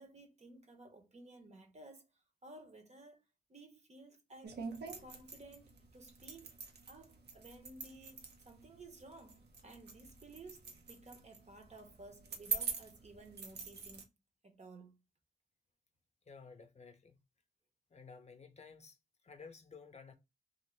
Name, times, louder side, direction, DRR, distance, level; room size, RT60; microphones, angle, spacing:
voice 1, 0.0-2.1 2.4-3.2 3.5-4.6 5.0-6.5 6.9-14.1 14.4-15.0, right 2 dB, 45° right, 0.7 m, -55 dB
sound 1, 4.4-14.0, right 5 dB, 90° right, 0.7 m, -45 dB
voice 2, 16.3-17.2 17.9-19.0 19.2-20.1, left 5 dB, 40° left, 0.5 m, -54 dB
2.6 x 2.5 x 3.0 m
wide cardioid pair, 85°, 17 cm